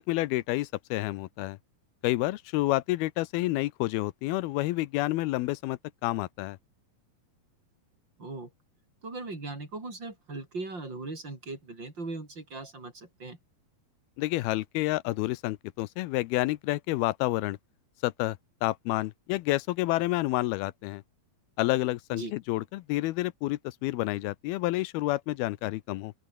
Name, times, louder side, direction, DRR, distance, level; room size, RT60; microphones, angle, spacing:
voice 1, 0.0-1.6 2.0-6.6 14.2-17.6 18.0-18.4 18.6-21.0 21.6-26.1, left 18 dB, 85° left, 2.7 m, -29 dB
voice 2, 8.2-8.5 9.0-13.4 22.1-22.3, right 3 dB, 30° right, 6.0 m, -39 dB
open air
omnidirectional pair, 4.4 m